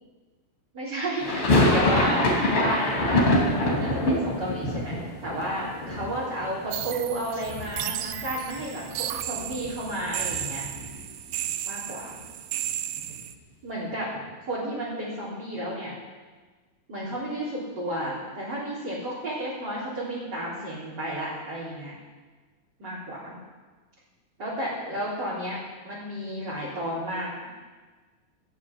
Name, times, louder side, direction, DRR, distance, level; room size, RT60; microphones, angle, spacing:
voice 1, 0.7-3.3 3.6-10.6 11.7-12.2 13.0-13.2 13.6-14.2 14.5-15.9 16.9-21.9 22.8-23.4 24.4-27.3, right 1 dB, 30° right, -9 dB, 3.9 m, -32 dB
sound 1, 1.2-7.2 7.4-8.3 8.5-8.6 8.9-11.1, left 1 dB, 40° left, 3.7 m, -25 dB
sound 2, 6.7-13.3, right 12 dB, 80° right, 2.3 m, -34 dB
14.0 x 10.5 x 8.6 m, 1.3 s
omnidirectional pair, 4.2 m